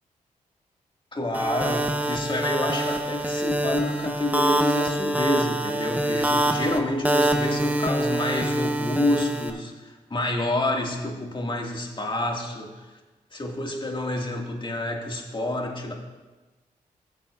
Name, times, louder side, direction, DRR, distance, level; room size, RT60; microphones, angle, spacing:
voice 1, 1.1-12.9 13.3-15.9, left 1 dB, 30° left, 0 dB, 2.0 m, -28 dB
sound 1, 1.3-9.5, right 1 dB, 10° right, 1.1 m, -25 dB
16.5 x 7.4 x 2.5 m, 1.2 s
supercardioid pair, 45°, 15 cm